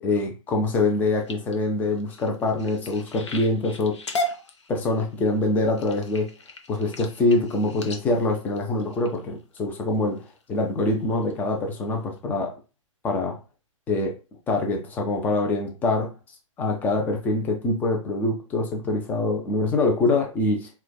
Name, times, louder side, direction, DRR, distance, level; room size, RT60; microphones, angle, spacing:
voice 1, 0.0-4.0 4.7-6.3 6.7-10.2 10.5-12.5 13.0-13.4 13.9-14.1 14.5-16.1 16.6-20.7, left 2 dB, 10° left, 2 dB, 0.4 m, -24 dB
sound 1, 0.9-9.6 10.2-10.5 10.9-11.3 11.8-11.9 12.2-12.3, left 1 dB, 55° left, 0.6 m, -36 dB
4.4 x 2.2 x 2.2 m, 0.32 s
figure-of-eight pair, 120°, 17 cm